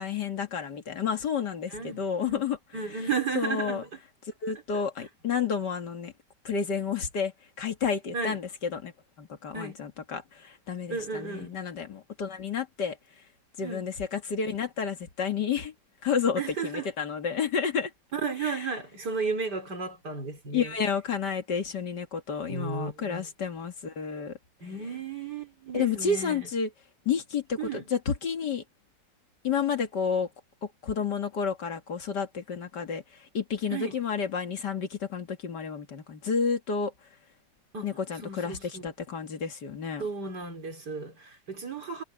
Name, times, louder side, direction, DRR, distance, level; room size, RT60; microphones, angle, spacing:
voice 1, 0.0-2.6 3.4-3.8 4.4-6.1 6.4-7.3 7.6-8.9 9.2-13.0 13.6-15.7 16.0-17.9 18.4-18.7 20.5-24.3 25.7-26.7 27.1-28.6 29.4-30.3 30.6-36.9 37.8-40.0, left 6 dB, 65° left, 2.5 m, -30 dB
voice 2, 1.7-2.4 2.7-3.9 8.1-8.4 9.5-9.8 10.9-11.6 13.6-13.9 16.4-16.9 18.1-20.8 22.5-23.3 24.6-26.5 27.6-27.9 33.7-33.9 37.7-37.9 38.2-38.9 40.0-42.0, right 4 dB, 65° right, 4.6 m, -34 dB
omnidirectional pair, 1.9 m